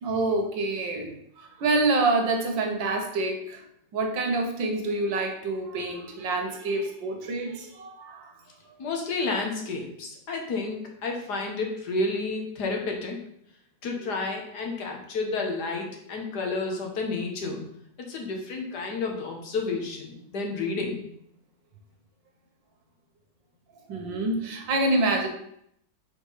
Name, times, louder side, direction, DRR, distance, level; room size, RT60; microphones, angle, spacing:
voice 1, 0.0-3.6 3.9-8.3 8.7-8.8 14.0-14.2 23.9-25.3, right 2 dB, 80° right, 3 dB, 1.9 m, -27 dB
voice 2, 8.8-13.2 13.8-17.6 18.1-21.0, left 3 dB, 65° left, 1 dB, 1.7 m, -30 dB
5.1 x 4.5 x 5.7 m, 0.71 s
omnidirectional pair, 2.0 m